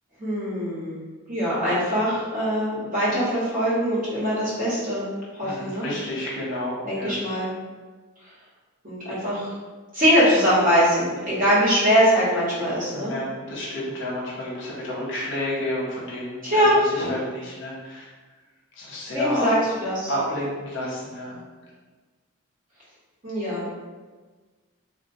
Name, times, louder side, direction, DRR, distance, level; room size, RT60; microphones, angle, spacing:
voice 1, 0.2-1.0 1.3-5.0 5.4-5.8 6.8-7.5 8.8-9.5 9.9-13.1 16.4-16.8 19.1-19.6 19.8-20.1 23.2-23.7, equal, 40° right, -9 dB, 1.0 m, -22 dB
voice 2, 5.4-7.2 12.9-18.1 18.8-19.5 20.1-21.4, left 1 dB, 55° left, -5 dB, 0.7 m, -30 dB
2.9 x 2.1 x 2.6 m, 1.3 s
head